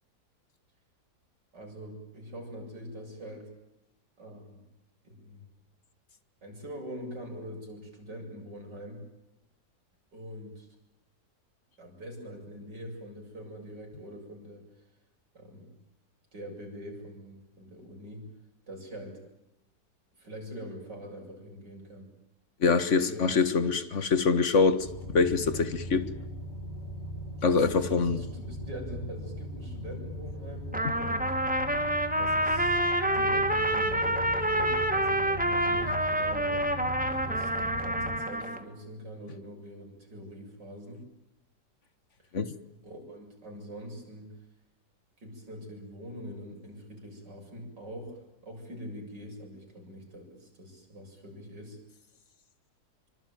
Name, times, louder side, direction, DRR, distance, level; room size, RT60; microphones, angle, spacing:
voice 1, 1.5-3.5 4.2-4.6 5.0-5.4 6.4-9.0 10.1-10.7 11.8-14.7 15.3-15.7 16.3-18.2 18.7-19.2 20.2-22.1 23.0-23.2 27.9-30.7 30.9-31.3 32.2-32.8 33.1-36.6 37.0-41.0 42.2-42.3 42.8-44.3 45.2-51.8, equal, 70° right, 8.0 m, -44 dB
voice 2, 22.6-26.1 27.4-28.2 30.8-30.9 42.3-42.5, left 4 dB, 45° left, 1.8 m, -25 dB
sound 1, 24.7-38.2, equal, 25° left, 4.0 m, -39 dB
Trumpet, 30.7-38.6, right 1 dB, 5° right, 2.0 m, -27 dB
25.5 x 25.0 x 9.3 m
omnidirectional pair, 1.9 m